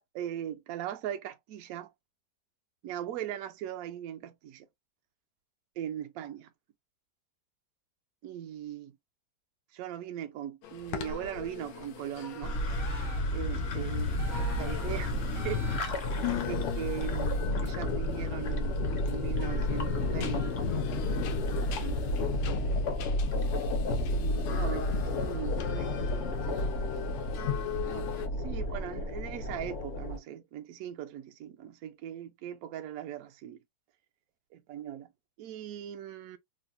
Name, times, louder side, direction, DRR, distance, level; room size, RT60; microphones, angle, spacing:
voice 1, 0.0-1.9 2.8-4.7 5.8-6.5 8.2-9.0 9.7-12.6 13.3-14.2 14.6-15.2 15.4-15.6 16.5-18.8 19.1-20.7 21.5-22.1 23.9-25.9 27.8-33.6 34.5-35.1 35.4-36.4, right 11 dB, 75° right, 0.8 m, -39 dB
sound 1, 10.6-28.3, left 10 dB, 80° left, 1.3 m, -42 dB
sound 2, 12.4-30.2, left 2 dB, 60° left, 0.8 m, -31 dB
sound 3, 12.7-13.4 14.2-14.9 15.3-16.2, right 4 dB, 35° right, 0.6 m, -47 dB
3.8 x 2.0 x 2.5 m
omnidirectional pair, 2.0 m